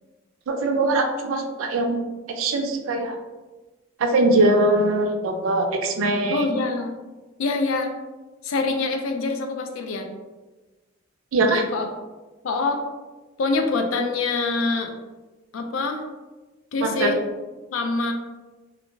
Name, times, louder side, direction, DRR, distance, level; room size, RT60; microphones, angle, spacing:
voice 1, 0.5-2.0 2.4-3.2 4.0-6.4 11.3-11.6 16.8-17.1, right 2 dB, 80° right, 5 dB, 0.4 m, -21 dB
voice 2, 6.3-7.0 7.4-7.9 8.4-10.1 11.7-11.9 12.4-12.8 13.4-14.9 15.5-16.0 16.7-17.2 17.7-18.1, left 3 dB, 75° left, 5 dB, 0.4 m, -25 dB
2.4 x 2.1 x 3.1 m, 1.2 s
head